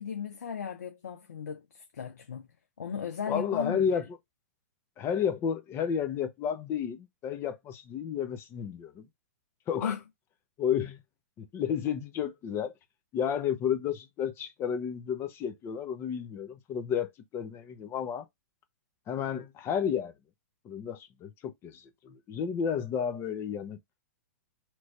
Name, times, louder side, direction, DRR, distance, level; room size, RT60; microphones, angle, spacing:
voice 1, 0.0-2.5 2.8-3.8 9.8-10.0, left 7 dB, 85° left, 0.6 m, -36 dB
voice 2, 3.3-4.0 5.0-9.0 9.7-10.0 10.6-11.0 11.4-12.7 13.1-18.2 19.1-20.1 20.6-23.8, left 8 dB, 25° left, 0.7 m, -32 dB
3.1 x 2.6 x 3.1 m
hypercardioid pair, 130°, 9 cm